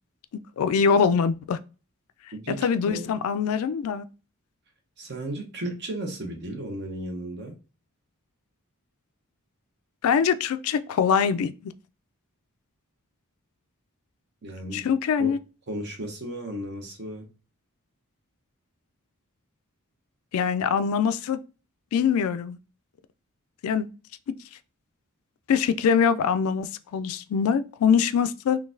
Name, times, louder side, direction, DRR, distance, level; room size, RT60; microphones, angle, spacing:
voice 1, 0.6-1.6 2.6-4.1 10.0-11.7 14.7-15.4 20.3-21.4 21.9-22.6 23.6-23.9 25.5-28.6, left 6 dB, 70° left, 0.3 m, -23 dB
voice 2, 2.3-3.0 5.0-7.5 14.4-14.9 15.2-15.3 15.7-17.2, right 1 dB, 50° right, 0.8 m, -34 dB
3.8 x 2.3 x 2.6 m
head